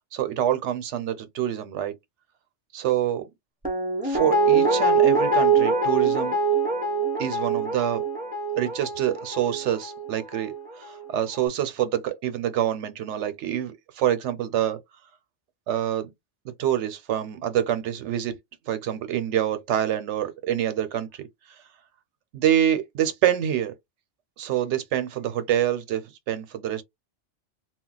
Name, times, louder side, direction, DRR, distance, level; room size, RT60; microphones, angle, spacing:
voice 1, 0.1-1.9 2.7-3.2 4.0-6.4 7.2-8.0 8.6-14.8 15.7-16.1 16.6-18.3 18.7-21.1 22.3-23.7 24.4-26.0 26.3-26.8, right 11 dB, 80° right, 0.9 m, -26 dB
Guitar, 3.6-10.7 11.0-11.1, right 4 dB, 10° right, 0.4 m, -23 dB
2.3 x 2.0 x 3.8 m
omnidirectional pair, 1.2 m